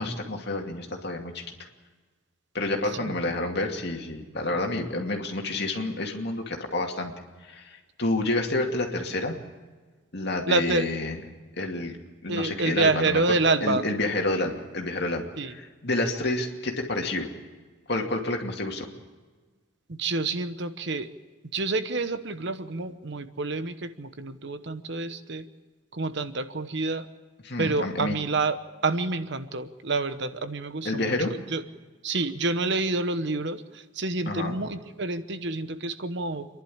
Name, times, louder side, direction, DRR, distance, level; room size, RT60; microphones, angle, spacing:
voice 1, 0.0-1.5 2.5-7.1 7.4-9.4 10.1-11.2 11.6-12.0 12.2-13.4 13.6-17.3 17.9-18.9 27.4-28.2 30.8-31.3 34.3-34.6, left 2 dB, 55° left, 2 dB, 2.5 m, -29 dB
voice 2, 10.5-10.9 12.3-13.8 15.4-15.6 19.9-21.1 21.5-25.5 25.9-27.1 27.6-28.6 28.8-31.2 31.5-31.6 32.0-36.5, right 3 dB, 55° right, 11 dB, 1.0 m, -28 dB
28.0 x 11.5 x 8.6 m, 1.4 s
head